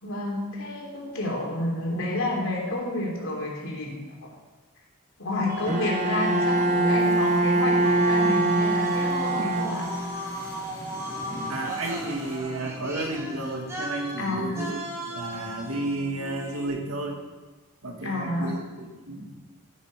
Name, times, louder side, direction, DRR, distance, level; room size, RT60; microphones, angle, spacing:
voice 1, 0.0-4.3 5.2-9.9 14.2-14.6 18.0-18.5, left 1 dB, 70° left, -2 dB, 3.4 m, -29 dB
sound 1, 5.5-16.7, right 1 dB, 15° right, 2.4 m, -36 dB
sound 2, 5.7-12.4, equal, 15° left, 2.8 m, -44 dB
Bowed string instrument, 5.7-10.2, right 2 dB, 30° right, 1.0 m, -23 dB
voice 2, 11.5-17.2 17.8-19.3, right 2 dB, 90° right, 2 dB, 2.1 m, -32 dB
15.5 x 8.3 x 5.0 m, 1.3 s
head